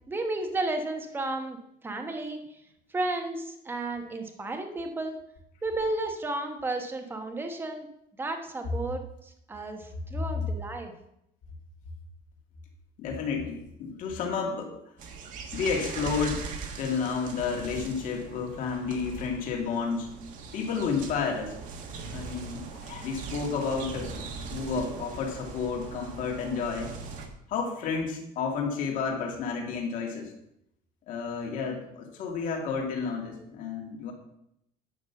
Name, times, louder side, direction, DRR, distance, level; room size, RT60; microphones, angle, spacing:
voice 1, 0.1-1.6 1.8-2.6 2.9-5.2 5.6-7.9 8.2-10.9, right 2 dB, 15° right, 4 dB, 1.2 m, -33 dB
voice 2, 13.0-14.7 15.5-16.5 16.8-20.1 20.5-21.6 22.1-26.9 27.5-30.3 31.1-34.1, left 5 dB, 55° left, 1 dB, 2.5 m, -31 dB
sound 1, 15.0-27.3, right 4 dB, 50° right, 1.6 m, -40 dB
9.9 x 6.4 x 7.1 m, 0.78 s
cardioid pair, 175°, 17 cm